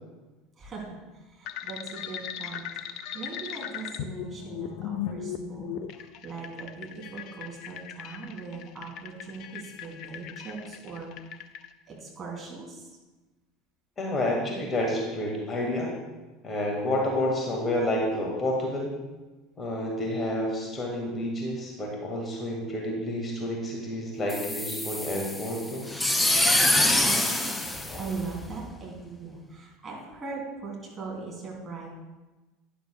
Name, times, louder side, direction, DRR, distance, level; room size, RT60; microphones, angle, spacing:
voice 1, 0.6-1.0 1.2-2.7 3.1-11.1 11.9-12.9 27.0-27.5 28.0-31.9, right 4 dB, 25° right, -3 dB, 2.9 m, -40 dB
sound 1, 1.5-11.7, left 9 dB, 50° left, 0.5 m, -38 dB
voice 2, 14.0-15.9 16.4-18.9 19.6-25.9 27.9-28.0, left 1 dB, 25° left, -1 dB, 1.8 m, -29 dB
sound 2, 24.3-28.6, left 1 dB, 10° left, 0.7 m, -25 dB
12.0 x 10.0 x 2.3 m, 1.2 s
figure-of-eight pair, 70°, 0 cm